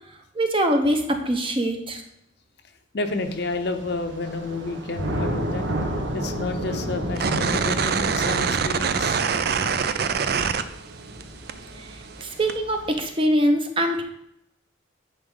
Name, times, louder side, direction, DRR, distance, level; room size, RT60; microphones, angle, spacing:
voice 1, 0.3-2.0 11.8-11.9 12.2-14.0, equal, 25° right, 5 dB, 0.8 m, -23 dB
voice 2, 2.9-5.7 6.1-9.2 12.2-12.3, left 3 dB, 55° left, 7 dB, 0.7 m, -30 dB
Thunder / Rain, 3.1-13.0, right 1 dB, 70° right, 1.2 m, -32 dB
sound 1, 7.2-11.2 11.5-12.6, right 6 dB, 50° right, 0.4 m, -24 dB
9.9 x 5.4 x 3.8 m, 0.78 s
head